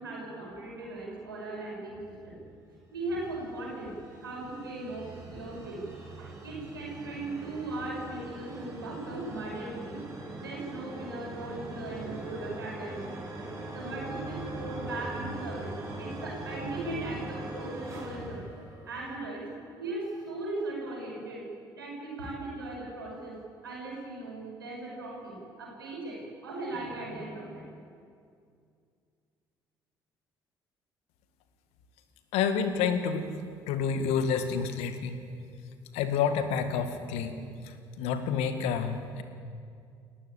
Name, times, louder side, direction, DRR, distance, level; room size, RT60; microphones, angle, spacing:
voice 1, 0.0-2.4 2.9-13.2 13.7-18.4 18.8-19.5 19.8-21.5 21.7-23.4 23.6-27.7, right 2 dB, 80° right, -3 dB, 6.4 m, -38 dB
sound 1, 3.2-19.3, right 2 dB, 25° right, 7.6 m, -41 dB
voice 2, 32.3-33.3 33.7-35.2 35.9-37.4 37.6-39.2, left 6 dB, 65° left, 8 dB, 2.0 m, -29 dB
29.0 x 12.5 x 8.8 m, 2.3 s
figure-of-eight pair, 50°, 12 cm